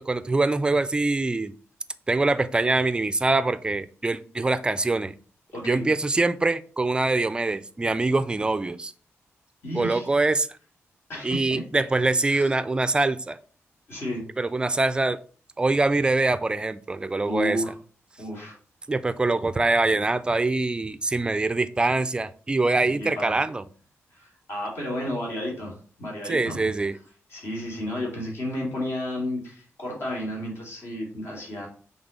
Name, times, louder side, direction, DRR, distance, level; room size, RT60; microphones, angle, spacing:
voice 1, 0.0-1.5 2.1-5.2 5.6-8.9 9.7-10.5 11.2-13.4 14.4-15.2 15.6-17.6 18.9-23.6 26.3-27.0, right 2 dB, 20° right, 13 dB, 0.4 m, -24 dB
voice 2, 5.5-5.8 9.6-10.1 11.1-11.6 12.3-12.5 13.9-14.2 17.2-17.7 18.2-18.6 22.9-23.4 24.1-26.7 27.3-31.7, left 1 dB, 55° left, -3 dB, 2.7 m, -32 dB
6.0 x 3.7 x 5.1 m, 0.42 s
wide cardioid pair, 150°, 5 cm